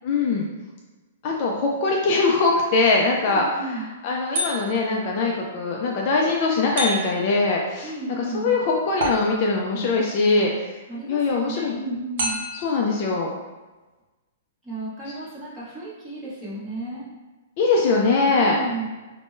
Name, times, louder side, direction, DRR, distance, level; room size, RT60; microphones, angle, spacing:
voice 1, 0.0-0.4 1.2-3.4 4.0-7.9 8.3-10.5 11.1-11.7 12.6-13.3 17.6-18.6, left 3 dB, 40° left, -1 dB, 0.4 m, -21 dB
voice 2, 3.2-3.9 7.8-8.6 10.9-12.4 14.6-17.1 18.4-18.9, right 2 dB, 10° right, -11 dB, 1.2 m, -33 dB
sound 1, 4.3-5.0 6.8-7.4 9.0-9.7 12.2-12.8, right 1 dB, 55° right, 0.7 m, -28 dB
3.5 x 2.1 x 2.5 m, 1.2 s
hypercardioid pair, 155°, 0 cm